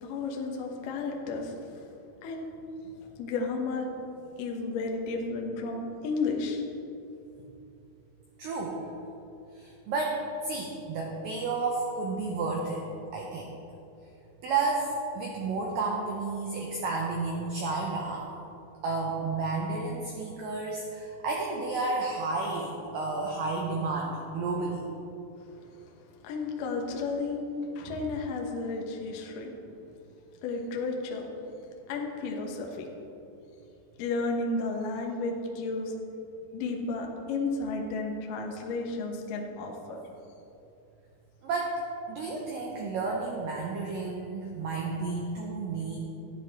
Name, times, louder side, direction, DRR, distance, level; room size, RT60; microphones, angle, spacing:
voice 1, 0.0-1.5 2.2-2.5 3.2-3.9 4.4-6.6 26.2-27.4 27.8-29.5 30.4-31.3 31.9-32.8 34.0-35.9 36.5-40.0, left 3 dB, 70° left, 1 dB, 2.0 m, -32 dB
voice 2, 8.4-8.9 9.5-12.8 13.1-13.5 14.4-18.2 18.8-24.8 29.6-29.7 41.4-41.8 42.1-46.0, right 3 dB, 85° right, -1 dB, 2.0 m, -31 dB
13.0 x 9.9 x 3.5 m, 2.8 s
omnidirectional pair, 5.3 m